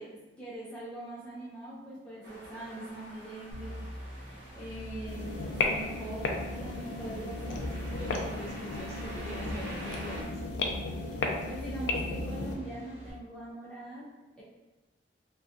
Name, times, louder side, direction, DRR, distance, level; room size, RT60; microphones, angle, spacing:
voice 1, 0.0-3.8 4.5-6.2 6.6-7.6 11.5-14.0 14.4-14.5, right 1 dB, 5° left, -7 dB, 0.4 m, -42 dB
sound 1, 2.2-10.2, equal, 80° right, 0.8 m, -47 dB
sound 2, 3.5-13.1, equal, 70° left, 0.7 m, -43 dB
sound 3, 5.1-12.6, left 3 dB, 90° left, 0.4 m, -35 dB
voice 2, 8.0-10.4, equal, 35° right, -5 dB, 0.7 m, -43 dB
2.5 x 2.2 x 2.5 m, 1.1 s
head